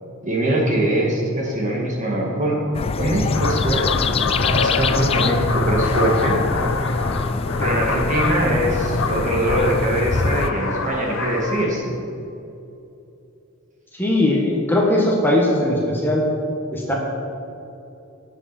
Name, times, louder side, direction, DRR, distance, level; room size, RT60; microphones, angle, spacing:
voice 1, 0.2-2.6 3.0-6.4 6.7-6.9 7.6-11.9, right 1 dB, 35° right, -2 dB, 2.2 m, -22 dB
sound 1, 2.7-10.5, left 4 dB, 30° left, 0.3 m, -24 dB
sound 2, 3.3-11.6, left 4 dB, 75° left, 0.9 m, -26 dB
voice 2, 13.9-16.2 16.7-16.9, left 1 dB, 10° left, -3 dB, 1.4 m, -19 dB
18.5 x 7.6 x 4.4 m, 2.8 s
head